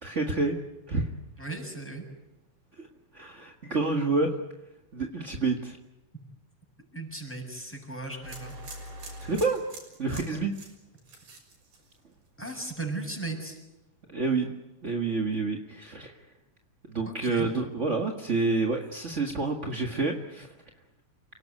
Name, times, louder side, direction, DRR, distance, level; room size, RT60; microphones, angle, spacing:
voice 1, 0.0-0.6 0.9-1.1 2.8-2.9 3.1-4.4 4.9-5.8 9.2-9.6 10.0-10.5 14.1-14.5 14.8-16.1 16.9-20.5, right 3 dB, 35° right, 2 dB, 1.3 m, -28 dB
voice 2, 1.4-2.0 6.9-8.5 10.1-10.2 12.4-13.6 17.1-17.5, right 2 dB, 5° left, 1 dB, 7.1 m, -36 dB
sound 1, 8.2-12.3 12.6-13.1, right 1 dB, 80° right, 7.8 m, -44 dB
29.5 x 18.5 x 9.6 m, 0.99 s
omnidirectional pair, 3.8 m